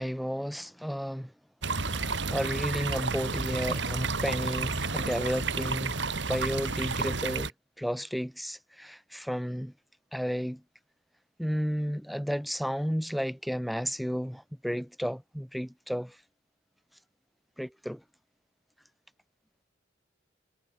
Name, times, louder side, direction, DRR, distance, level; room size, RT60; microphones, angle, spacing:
voice 1, 0.0-1.3 1.9-6.0 6.3-7.5 7.8-9.7 10.1-10.6 11.4-16.2 17.6-18.0, equal, ahead, 2.9 m, -32 dB
sound 1, 1.6-7.5, right 4 dB, 65° right, 2.3 m, -31 dB
head